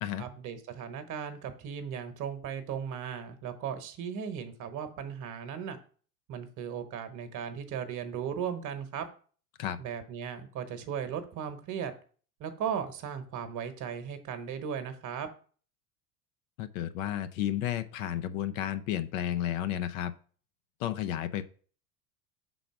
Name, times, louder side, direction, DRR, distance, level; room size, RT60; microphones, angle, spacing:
voice 1, 0.2-5.8 6.3-9.1 9.8-11.9 12.4-15.3, right 7 dB, 40° right, 8 dB, 1.2 m, -37 dB
voice 2, 16.6-20.1 20.8-21.4, left 11 dB, 55° left, 11 dB, 0.7 m, -32 dB
5.8 x 4.0 x 5.7 m, 0.42 s
figure-of-eight pair, 80°, 47 cm